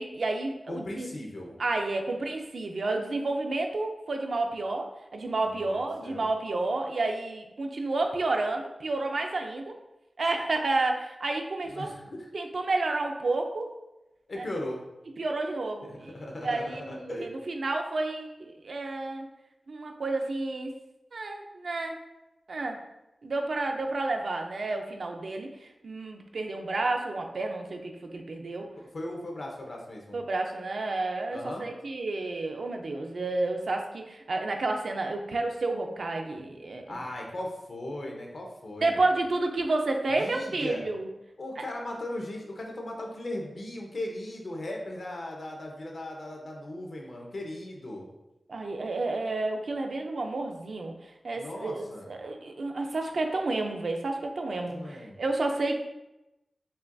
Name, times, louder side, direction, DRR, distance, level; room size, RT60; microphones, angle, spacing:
voice 1, 0.0-1.1 1.6-4.9 5.1-9.8 10.2-11.9 12.3-13.7 14.4-14.5 15.2-19.3 19.7-20.7 21.1-22.0 22.5-22.8 23.2-28.7 30.1-37.0 38.8-41.1 41.6-41.7 48.5-50.9 51.2-55.8, right 2 dB, 70° right, 3 dB, 0.4 m, -30 dB
voice 2, 0.7-1.6 5.4-6.3 11.7-12.3 14.3-14.8 15.9-17.3 28.8-30.2 31.3-31.7 36.9-39.1 40.2-40.8 41.4-48.1 51.3-52.1 54.7-55.2, left 1 dB, 60° left, 0 dB, 0.7 m, -38 dB
5.5 x 2.3 x 2.6 m, 0.94 s
wide cardioid pair, 110°, 0 cm